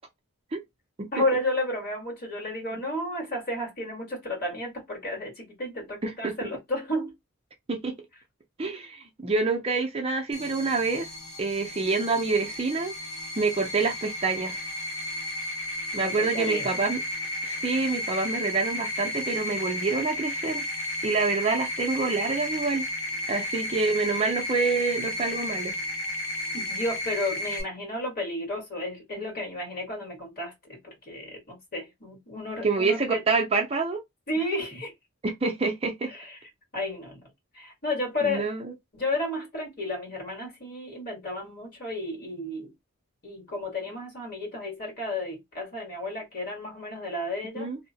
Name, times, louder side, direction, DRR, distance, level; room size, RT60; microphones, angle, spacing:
voice 1, 1.1-7.1 15.9-16.7 26.5-33.2 34.3-34.9 36.1-36.4 36.7-37.2 37.5-38.5 38.9-42.7 43.2-47.7, left 1 dB, 45° left, 1.6 m, -32 dB
voice 2, 6.0-6.3 7.7-7.9 8.6-11.1 11.4-12.9 13.4-14.6 15.9-17.0 17.4-20.7 21.0-22.9 23.3-25.7 32.6-34.0 35.2-36.1 38.2-38.6 47.6-47.8, right 4 dB, 25° right, 0.4 m, -27 dB
sound 1, 10.3-27.6, left 1 dB, 90° left, 1.0 m, -33 dB
2.7 x 2.1 x 2.7 m
head